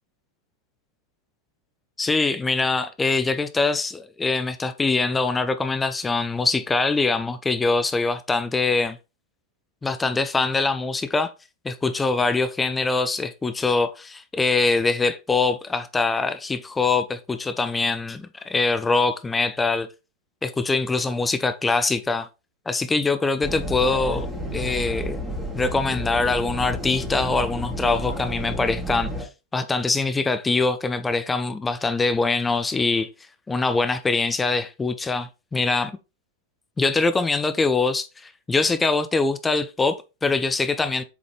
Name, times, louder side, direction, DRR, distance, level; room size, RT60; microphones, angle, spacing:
voice 1, 2.0-9.0 9.8-11.3 11.6-19.9 20.4-22.3 22.7-25.3 25.5-33.1 33.5-35.9 36.8-41.0, left 3 dB, 10° left, 0.6 m, -23 dB
sound 1, 23.4-29.2, equal, 5° right, 2.1 m, -31 dB
7.3 x 4.1 x 3.3 m
figure-of-eight pair, 90°, 0 cm